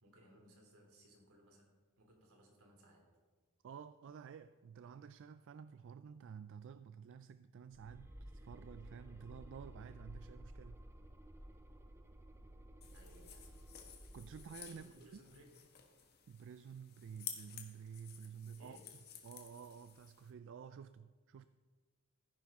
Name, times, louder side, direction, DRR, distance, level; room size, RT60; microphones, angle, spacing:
voice 1, 0.0-3.1 12.9-13.7 14.7-15.6 18.6-18.9, equal, 80° right, 2.9 m, -63 dB
voice 2, 3.6-10.8 14.1-15.2 16.3-18.8 19.2-21.5, right 7 dB, 60° right, 0.3 m, -52 dB
sound 1, 7.7-15.0, right 1 dB, 10° right, 0.6 m, -55 dB
sound 2, 12.8-20.3, left 8 dB, 50° left, 1.5 m, -53 dB
14.5 x 10.5 x 3.6 m
head